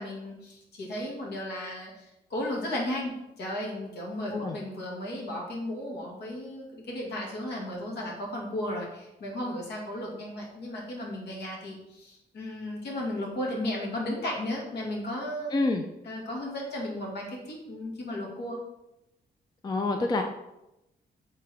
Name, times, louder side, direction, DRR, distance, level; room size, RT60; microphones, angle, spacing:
voice 1, 0.0-15.5 16.0-18.6, left 1 dB, 70° left, -2 dB, 1.9 m, -35 dB
voice 2, 15.5-15.8 19.6-20.2, left 2 dB, 25° left, 4 dB, 0.4 m, -27 dB
7.5 x 3.7 x 3.4 m, 0.91 s
cardioid pair, 130°, 18 cm